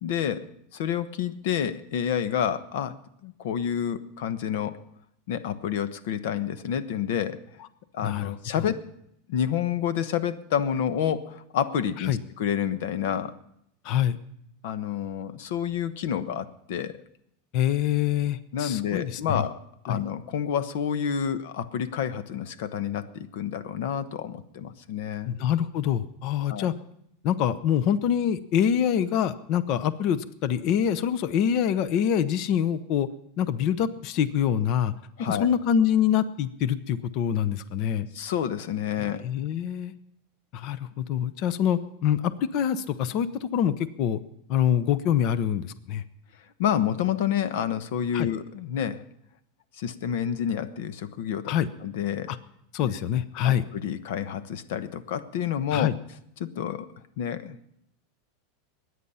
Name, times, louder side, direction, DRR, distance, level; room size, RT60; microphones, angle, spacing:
voice 1, 0.0-4.8 5.3-7.4 7.9-8.8 9.3-13.4 14.6-17.0 18.5-25.3 26.5-26.7 35.2-35.5 38.1-39.2 46.6-49.0 49.8-51.5 51.8-52.3 53.4-55.9 56.4-56.9 57.2-57.7, left 9 dB, 65° left, 13 dB, 1.1 m, -29 dB
voice 2, 8.0-8.3 12.0-12.2 13.8-14.2 17.5-19.4 19.9-20.0 25.3-26.7 27.2-33.1 33.4-34.9 35.2-38.1 39.0-39.9 40.5-44.2 44.5-46.0 48.1-48.3 51.5-51.7 52.3-52.4 52.7-53.6 55.7-55.9, left 9 dB, 40° left, 14 dB, 0.8 m, -25 dB
22.5 x 9.6 x 5.6 m, 0.75 s
supercardioid pair, 160°, 0 cm